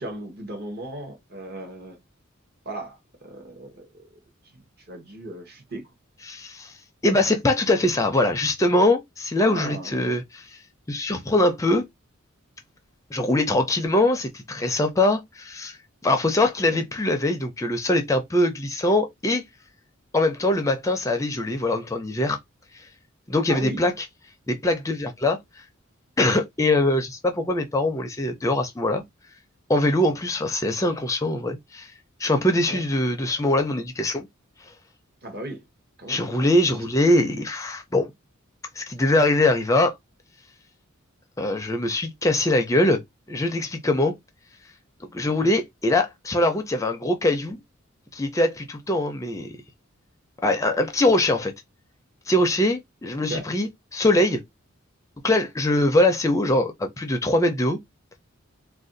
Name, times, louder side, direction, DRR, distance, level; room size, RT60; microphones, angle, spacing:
voice 1, 0.0-2.0 2.6-4.1 4.5-4.6 4.9-5.9 9.4-10.2 16.6-16.8 23.5-23.8 32.7-32.8 35.2-35.6 36.0-36.2 36.7-36.8 45.4-45.5 53.3-53.5, right 1 dB, 50° right, 0.9 m, -36 dB
voice 2, 6.2-6.7 7.0-10.2 10.9-11.8 13.1-15.8 16.0-19.4 20.1-22.4 22.7-22.8 23.3-24.0 24.5-25.4 26.2-29.0 29.7-31.9 32.2-34.3 36.1-38.1 38.8-39.9 41.4-43.0 43.3-44.1 45.1-47.6 48.1-49.5 50.4-51.5 52.3-54.4 55.2-57.8, left 1 dB, 15° left, 0.4 m, -22 dB
2.5 x 2.2 x 3.8 m
head